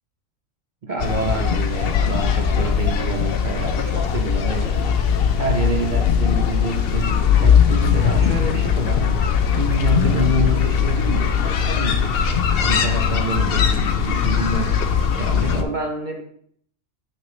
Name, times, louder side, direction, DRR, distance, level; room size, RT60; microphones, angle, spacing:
voice 1, 0.8-4.9 5.4-9.2 9.5-12.3 12.6-14.8 15.1-16.2, right 2 dB, 45° right, 1 dB, 0.7 m, -27 dB
sound 1, 1.0-15.6, left 7 dB, 60° left, 0.7 m, -20 dB
sound 2, 2.1-11.1, left 4 dB, 85° left, 1.1 m, -38 dB
6.3 x 6.2 x 3.1 m, 0.64 s
omnidirectional pair, 1.3 m